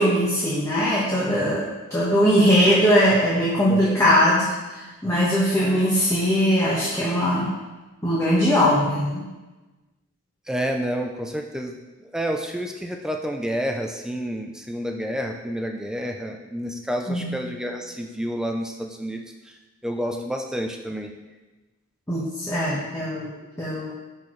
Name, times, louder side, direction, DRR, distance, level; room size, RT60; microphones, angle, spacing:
voice 1, 0.0-1.6 1.9-7.5 8.0-9.2 17.1-17.3 22.1-23.3 23.6-23.9, equal, 15° left, -7 dB, 1.1 m, -20 dB
voice 2, 3.7-4.1 10.5-11.8 12.0-19.5 19.8-21.1 23.9-24.0, equal, 5° right, 2 dB, 0.5 m, -29 dB
10.5 x 4.4 x 3.2 m, 1.1 s
head